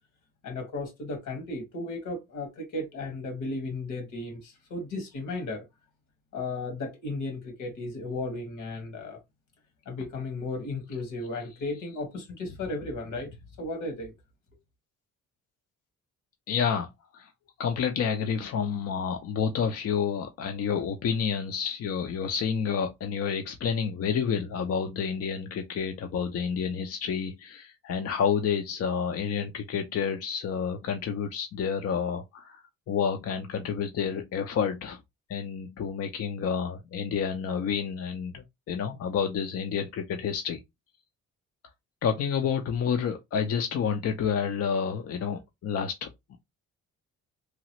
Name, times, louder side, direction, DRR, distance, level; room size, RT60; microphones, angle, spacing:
voice 1, 0.4-5.6 6.3-9.2 9.8-13.3 13.6-14.1, left 2 dB, 80° left, 1.5 m, -35 dB
voice 2, 16.5-17.3 17.6-35.0 35.3-40.6 42.0-46.4, left 7 dB, 55° left, 0.5 m, -29 dB
3.0 x 2.3 x 2.9 m
cardioid pair, 90°, 30 cm